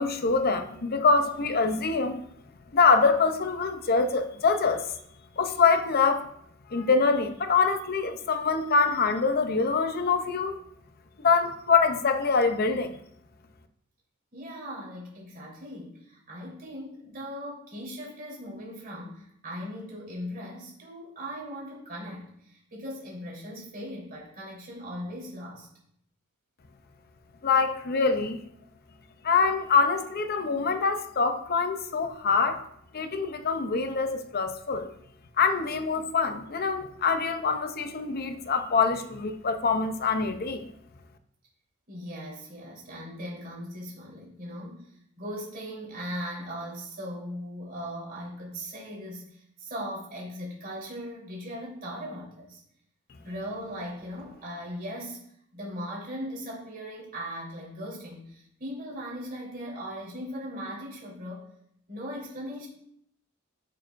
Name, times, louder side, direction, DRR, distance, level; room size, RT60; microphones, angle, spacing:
voice 1, 0.0-2.2 2.7-4.9 5.4-6.3 6.7-10.6 11.2-13.0 27.4-28.4 29.2-32.6 32.9-34.9 35.4-40.6, left 4 dB, 45° left, 8 dB, 0.6 m, -24 dB
voice 2, 14.3-25.7 41.9-52.6 53.2-55.2 55.5-61.5 61.9-62.7, equal, 45° right, -4 dB, 3.6 m, -39 dB
10.5 x 6.7 x 2.6 m, 0.71 s
head